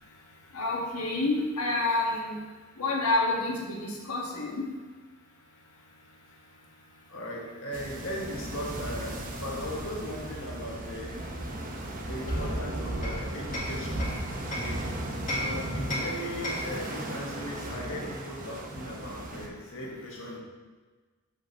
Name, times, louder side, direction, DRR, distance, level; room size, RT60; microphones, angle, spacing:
voice 1, 0.5-2.3 2.8-3.5 3.8-4.5, left 2 dB, 80° left, -1 dB, 1.6 m, -28 dB
voice 2, 7.1-11.3 12.1-14.1 14.5-14.9 15.3-20.4, equal, 60° left, -3 dB, 1.7 m, -38 dB
sound 1, 7.7-19.5, right 1 dB, 40° right, 0.9 m, -35 dB
Hammer, 12.3-14.8 15.3-16.8, left 1 dB, 35° left, 1.8 m, -36 dB
7.9 x 5.1 x 4.2 m, 1.3 s
head